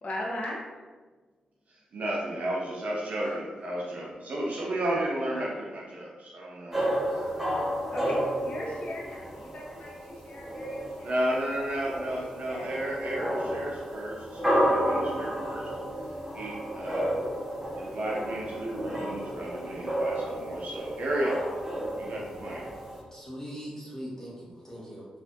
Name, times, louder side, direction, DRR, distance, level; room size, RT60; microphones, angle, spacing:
voice 1, 0.0-0.6 3.2-3.7 4.9-5.0 5.3-5.5 7.9-11.3 11.7-12.0 12.5-12.8, left 1 dB, 55° left, -4 dB, 0.6 m, -38 dB
voice 2, 1.7-7.6 11.0-15.8 16.3-17.2 17.8-21.4 22.0-22.6, right 1 dB, 65° right, -3 dB, 0.5 m, -33 dB
sound 1, 6.7-23.0, equal, 10° right, 0.8 m, -32 dB
voice 3, 23.0-25.1, equal, 20° left, -6 dB, 1.1 m, -41 dB
3.2 x 2.4 x 2.6 m, 1.4 s
supercardioid pair, 45°, 3 cm